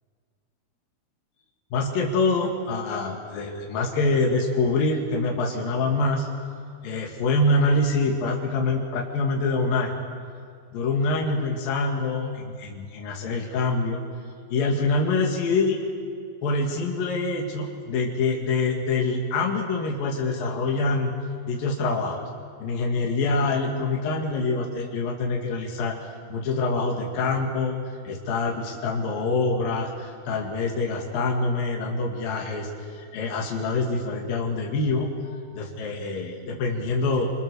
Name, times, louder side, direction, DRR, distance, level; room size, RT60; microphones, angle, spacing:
voice 1, 1.7-6.3 6.8-9.9 10.7-14.0 14.5-15.8 16.4-21.1 21.5-22.2 22.6-26.0 26.3-27.8 28.1-32.7 32.9-37.3, left 3 dB, 65° left, -1 dB, 3.7 m, -25 dB
30.0 x 25.5 x 6.8 m, 2.2 s
omnidirectional pair, 4.4 m